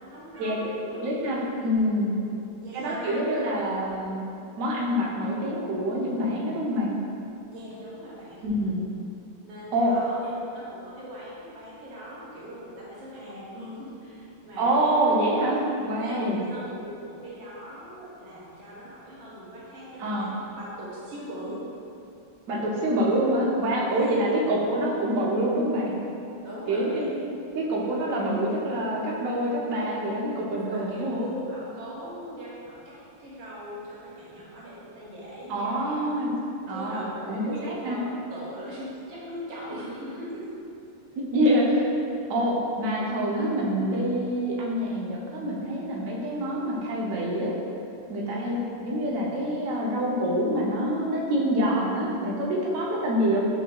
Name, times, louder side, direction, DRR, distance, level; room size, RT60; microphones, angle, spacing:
voice 1, 0.0-1.1 2.0-3.8 7.5-8.4 9.4-14.9 16.0-21.7 23.9-24.3 26.4-27.1 28.1-28.3 30.5-36.1 36.7-40.6 48.2-48.5, equal, 70° right, -7 dB, 1.6 m, -40 dB
voice 2, 1.0-2.1 2.7-4.2 4.6-7.0 8.4-8.8 9.7-9.9 14.6-16.4 20.0-20.3 22.5-25.9 26.7-27.1 27.5-31.2 35.5-36.3 36.7-38.0 41.2-41.9 42.3-47.5 48.1-48.5 48.8-53.5, equal, 85° right, -4 dB, 0.7 m, -26 dB
6.1 x 3.5 x 2.2 m, 2.7 s
omnidirectional pair, 2.4 m